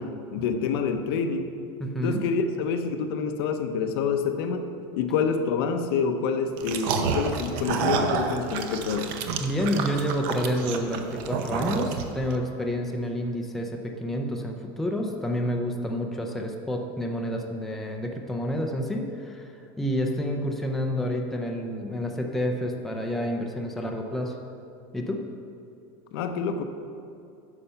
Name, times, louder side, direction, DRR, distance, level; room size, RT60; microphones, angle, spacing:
voice 1, 0.0-1.5 2.0-4.7 4.9-9.1 26.1-26.6, left 5 dB, 70° left, 6 dB, 0.8 m, -27 dB
voice 2, 1.8-2.2 9.4-19.5 19.8-24.4 24.9-25.2, equal, ahead, 1 dB, 0.5 m, -29 dB
sound 1, 6.6-12.3, right 6 dB, 55° right, 0.8 m, -29 dB
9.9 x 6.6 x 5.6 m, 2.6 s
cardioid pair, 180°, 13 cm